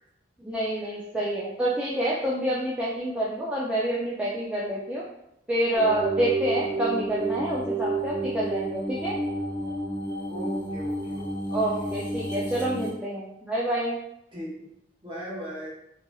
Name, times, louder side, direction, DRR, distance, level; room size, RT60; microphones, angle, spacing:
voice 1, 0.4-5.0 5.5-9.2 11.5-14.0, right 1 dB, 5° right, -6 dB, 0.3 m, -28 dB
sound 1, 5.8-12.9, right 2 dB, 25° left, 1.0 m, -30 dB
voice 2, 10.3-11.3 11.6-11.7 14.3-14.7 15.0-15.7, right 1 dB, 25° right, -7 dB, 1.0 m, -37 dB
2.9 x 2.6 x 2.3 m, 0.80 s
head